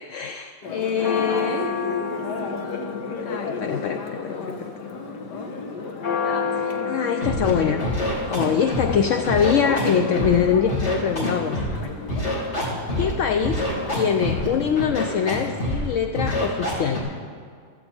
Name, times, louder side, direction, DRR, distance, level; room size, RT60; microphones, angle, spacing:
voice 1, 0.0-2.2 3.3-4.7 6.6-7.8 8.3-12.0 12.2-12.4 13.0-13.7 13.9-17.0, left 7 dB, 65° left, 7 dB, 0.8 m, -24 dB
Church bell, 0.6-15.6, left 4 dB, 90° left, 1.9 m, -31 dB
Scratching (performance technique), 7.2-7.5 7.8-8.9 9.2-10.3 10.7-11.8 12.1-13.1 13.4-14.5 14.8-15.3 15.6-15.9 16.1-17.0, left 1 dB, 40° left, 3.1 m, -26 dB
15.5 x 13.0 x 4.4 m, 2.1 s
omnidirectional pair, 1.7 m